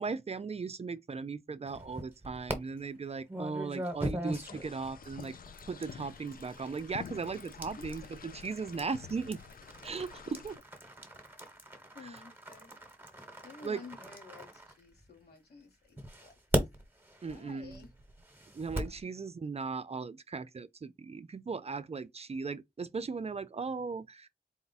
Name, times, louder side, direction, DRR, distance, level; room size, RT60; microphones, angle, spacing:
voice 1, 0.0-5.4 5.7-9.4 9.8-10.6 13.6-13.8 17.2-17.8 18.5-24.3, right 4 dB, 40° right, 0.4 m, -37 dB
sound 1, 1.7-2.6 3.3-15.3 16.0-19.0, right 1 dB, 10° right, 1.2 m, -40 dB
sound 2, 4.3-10.6, left 7 dB, 60° left, 0.4 m, -49 dB
voice 2, 11.9-12.7 13.4-16.7 17.2-17.9 18.9-19.0, left 4 dB, 80° left, 1.6 m, -52 dB
4.3 x 2.3 x 4.0 m
wide cardioid pair, 100°, 16 cm